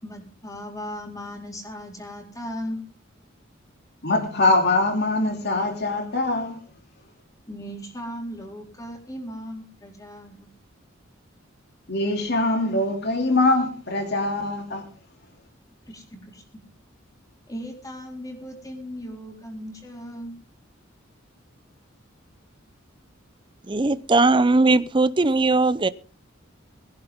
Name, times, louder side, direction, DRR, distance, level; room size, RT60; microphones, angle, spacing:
voice 1, 0.0-2.8 7.5-10.5 15.9-16.4 17.5-20.4, equal, 20° left, 4.2 m, -37 dB
voice 2, 4.0-6.6 11.9-14.8, left 2 dB, 55° left, 2.8 m, -23 dB
voice 3, 23.7-25.9, right 3 dB, 25° right, 0.6 m, -19 dB
21.5 x 11.0 x 3.7 m
head